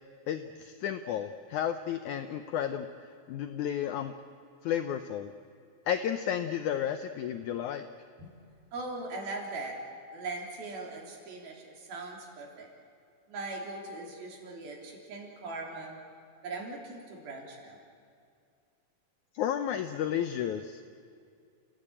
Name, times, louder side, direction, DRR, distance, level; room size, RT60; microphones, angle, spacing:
voice 1, 0.3-2.9 3.3-4.1 4.6-5.3 5.9-7.8 19.4-20.8, left 9 dB, 75° left, 9 dB, 1.9 m, -32 dB
voice 2, 8.7-9.8 10.1-12.7 13.3-16.0 16.4-17.8, right 2 dB, 90° right, 0 dB, 5.4 m, -40 dB
29.5 x 16.5 x 8.8 m, 2.3 s
omnidirectional pair, 4.1 m